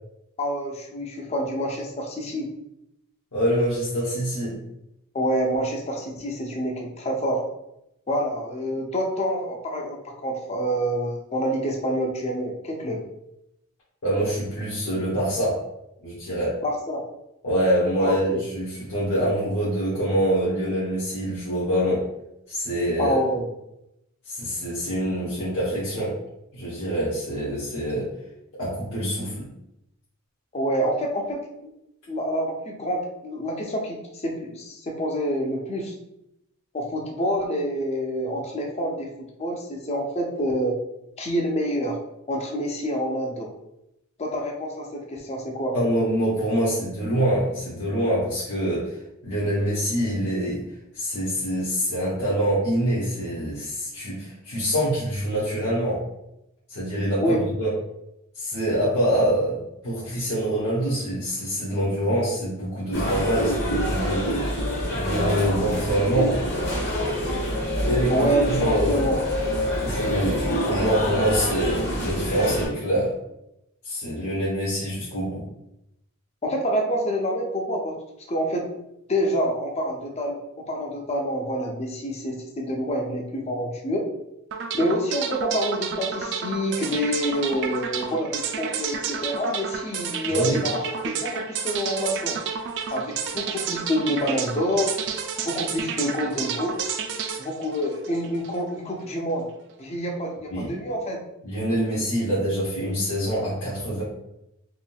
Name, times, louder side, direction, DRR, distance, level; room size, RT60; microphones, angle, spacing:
voice 1, 0.4-2.5 5.1-7.4 8.1-13.0 16.6-17.0 18.0-18.4 23.0-23.5 30.5-31.7 32.1-35.9 36.7-39.1 39.4-40.7 41.2-42.0 42.3-43.5 44.2-45.8 57.2-57.4 68.1-69.2 76.4-78.0 78.3-78.7 79.1-84.1 84.7-92.4 92.9-94.9 95.4-96.9 97.4-99.5 99.8-101.2, equal, 30° left, 1 dB, 0.4 m, -27 dB
voice 2, 3.3-4.6 14.0-15.6 16.0-16.5 17.4-22.0 22.5-23.2 24.3-26.1 26.5-28.1 28.6-29.5 45.7-49.0 49.2-50.6 50.9-56.0 56.7-57.7 58.3-64.3 64.9-66.3 67.8-69.1 69.8-73.1 73.8-75.4 90.3-90.6 100.5-100.7 101.4-104.0, equal, 75° left, -9 dB, 0.9 m, -25 dB
sound 1, 62.9-72.7, equal, 55° left, 1.0 m, -26 dB
sound 2, 84.5-98.6, right 7 dB, 55° right, 0.3 m, -31 dB
3.6 x 2.5 x 2.2 m, 0.85 s
head